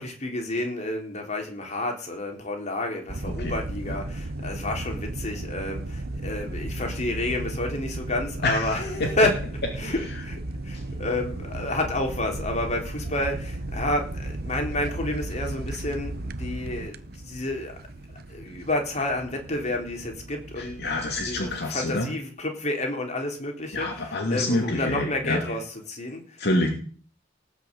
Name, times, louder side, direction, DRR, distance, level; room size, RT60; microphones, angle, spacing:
voice 1, 0.0-9.4 9.8-17.8 18.3-20.8 21.3-26.4, left 1 dB, 35° left, 3 dB, 3.8 m, -30 dB
sound 1, 3.1-21.6, right 2 dB, 55° right, 1.0 m, -35 dB
voice 2, 8.4-9.1 9.8-9.9 10.7-10.8 20.6-22.1 23.7-25.4 26.4-26.7, left 2 dB, 55° left, 2 dB, 2.6 m, -27 dB
18.5 x 6.5 x 8.2 m, 0.41 s
head